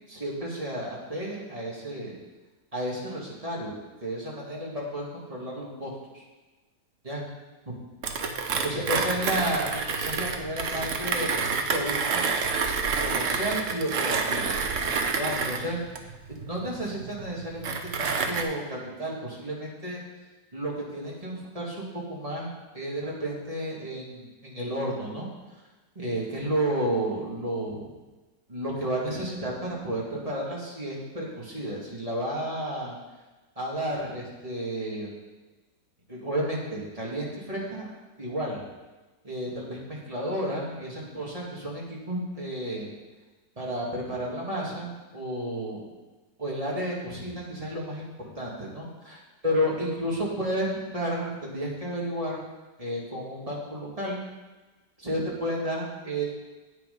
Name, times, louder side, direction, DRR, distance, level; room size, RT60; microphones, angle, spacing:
voice 1, 0.1-2.1 2.7-3.7 4.0-6.2 7.0-7.2 8.6-12.2 13.0-14.6 15.1-15.8 16.3-20.0 20.5-25.3 26.0-27.9 28.5-33.0 33.6-35.1 36.1-37.9 38.2-38.6 39.2-42.9 43.6-45.9 46.4-48.1 48.4-52.4 52.8-54.2 55.0-56.2, equal, 20° right, -4 dB, 2.1 m, -32 dB
Mechanisms, 8.0-18.4, right 5 dB, 55° right, 1.0 m, -28 dB
9.0 x 6.7 x 5.4 m, 1.2 s
omnidirectional pair, 1.9 m